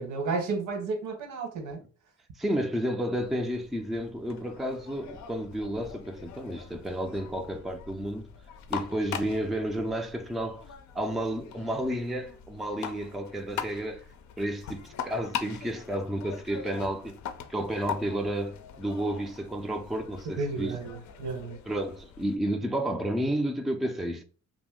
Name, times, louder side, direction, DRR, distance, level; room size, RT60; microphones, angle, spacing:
voice 1, 0.0-1.8 20.4-21.6, right 4 dB, 80° right, 1.0 m, -32 dB
voice 2, 2.4-8.3 8.7-10.6 10.9-14.1 14.4-17.2 17.5-20.7 21.7-24.2, right 1 dB, ahead, 0.3 m, -31 dB
sound 1, 3.1-22.4, left 8 dB, 70° left, 0.5 m, -42 dB
2.5 x 2.0 x 3.6 m
cardioid pair, 90°, 30 cm